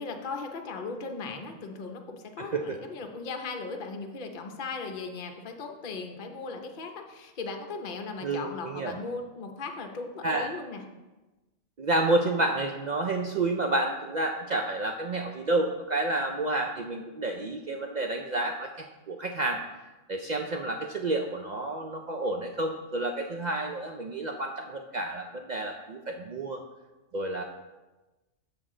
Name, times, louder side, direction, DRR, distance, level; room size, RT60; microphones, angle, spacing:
voice 1, 0.0-10.8, left 4 dB, 45° left, 4 dB, 0.8 m, -37 dB
voice 2, 2.4-2.8 8.2-9.0 10.2-10.5 11.8-19.6 20.1-26.6 27.1-27.4, right 2 dB, 65° right, 3 dB, 0.4 m, -30 dB
8.0 x 6.0 x 3.7 m, 1.1 s
omnidirectional pair, 1.3 m